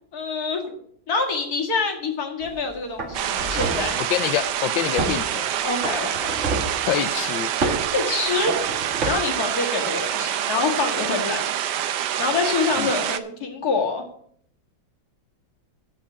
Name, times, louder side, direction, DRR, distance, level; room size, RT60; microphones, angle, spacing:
voice 1, 0.1-0.8 1.1-4.0 5.6-6.4 7.9-8.5 9.0-11.5 12.2-14.0, left 4 dB, 50° left, 2 dB, 2.2 m, -26 dB
sound 1, 2.4-2.6 3.0-4.0 5.0-5.2 5.8-6.8 7.6-7.9 8.5-9.1, right 2 dB, 40° right, 2.0 m, -28 dB
sound 2, 3.1-13.2, right 10 dB, 70° right, 1.2 m, -26 dB
voice 2, 4.1-5.5 6.9-7.5 12.8-12.9, left 12 dB, 80° left, 13 dB, 1.3 m, -26 dB
8.7 x 6.2 x 8.3 m, 0.64 s
omnidirectional pair, 2.1 m